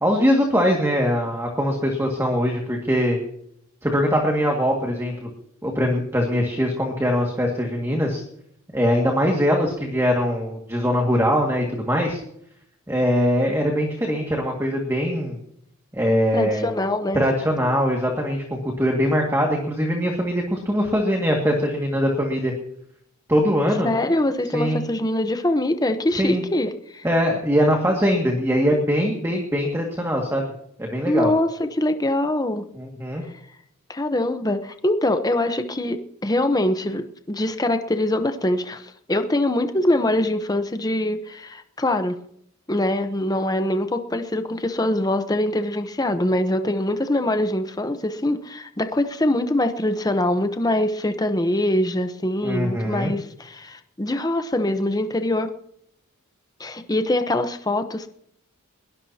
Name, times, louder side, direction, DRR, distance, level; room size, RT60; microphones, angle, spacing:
voice 1, 0.0-3.2 3.8-5.3 5.6-8.2 8.7-12.2 12.9-15.4 15.9-16.7 17.1-22.5 23.3-23.9 24.5-24.8 26.2-26.4 27.0-30.4 30.8-31.3 32.8-33.2 52.4-53.1, equal, 10° right, 1 dB, 2.0 m, -22 dB
voice 2, 16.3-17.2 23.8-27.1 31.1-32.7 33.9-42.1 42.7-55.5 56.6-58.1, left 1 dB, 15° left, 8 dB, 0.9 m, -23 dB
21.5 x 18.0 x 2.9 m, 0.71 s
head